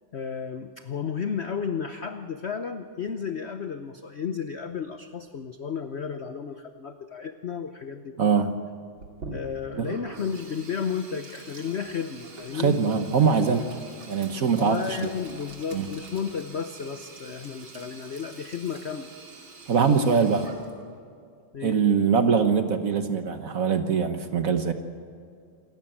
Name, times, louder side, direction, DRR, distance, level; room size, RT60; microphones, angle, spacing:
voice 1, 0.1-8.6 9.3-12.8 14.6-19.1 21.5-21.8, left 6 dB, 70° left, 8 dB, 0.6 m, -33 dB
voice 2, 8.2-8.5 9.8-9.9 12.5-13.7 14.1-15.1 15.7-15.9 19.7-20.5 21.6-24.7, right 6 dB, 50° right, 8 dB, 1.2 m, -23 dB
Sink (filling or washing), 9.0-21.0, right 3 dB, 75° right, 3.4 m, -45 dB
27.0 x 13.5 x 8.9 m, 2.3 s
omnidirectional pair, 2.2 m